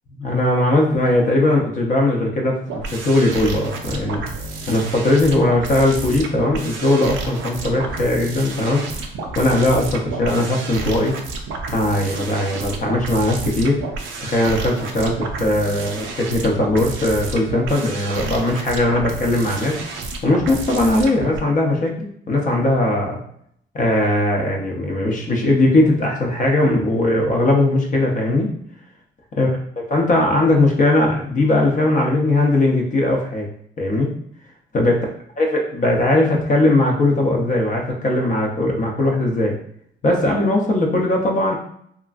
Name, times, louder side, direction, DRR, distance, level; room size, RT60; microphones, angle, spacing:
voice 1, 0.2-4.2 4.7-8.8 9.4-11.2 11.7-13.8 14.2-19.8 20.2-23.2 23.7-28.5 29.4-29.5 29.9-33.5 33.8-34.1 34.7-35.0 35.4-39.6 40.0-41.6, left 1 dB, 40° left, 0 dB, 0.6 m, -19 dB
sound 1, 2.7-21.4, right 3 dB, 75° right, 0.5 m, -30 dB
2.8 x 2.4 x 2.4 m, 0.68 s
cardioid pair, 90°, 20 cm